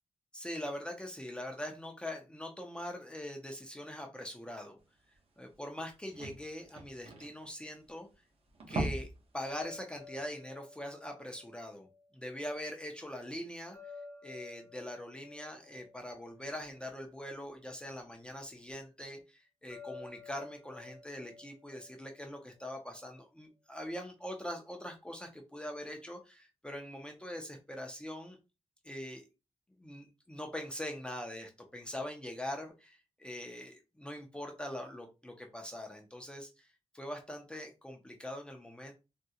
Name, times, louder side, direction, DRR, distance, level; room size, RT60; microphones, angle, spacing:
voice 1, 0.3-4.8 5.4-8.1 8.7-9.1 9.3-11.9 12.1-13.8 14.2-28.4 28.8-29.2 29.8-38.9, left 1 dB, 10° left, 2 dB, 0.5 m, -42 dB
sound 1, 5.1-5.2 5.5-5.6 5.8-8.1 8.5-9.3 9.6-9.8 10.2-10.3, right 2 dB, 60° right, 0.8 m, -38 dB
sound 2, 9.4-12.5 13.7-17.2 19.7-22.8, left 4 dB, 30° left, 0.8 m, -52 dB
3.5 x 2.1 x 2.7 m, 0.28 s
wide cardioid pair, 160°, 11 cm